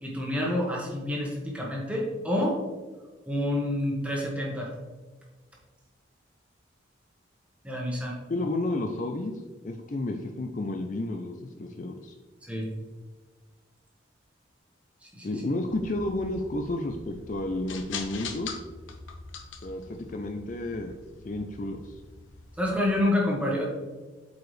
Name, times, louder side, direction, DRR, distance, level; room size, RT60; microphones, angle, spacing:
voice 1, 0.0-2.6 3.3-4.7 7.6-8.2 12.5-12.7 15.0-15.3 22.6-23.6, left 1 dB, 5° right, -3 dB, 1.3 m, -28 dB
voice 2, 8.3-9.3 9.6-12.1 15.2-18.5 19.6-20.9 21.2-21.9, left 2 dB, 40° left, 4 dB, 0.4 m, -31 dB
sound 1, 15.6-23.0, left 5 dB, 85° left, 0.7 m, -43 dB
8.0 x 4.8 x 3.2 m, 1.3 s
head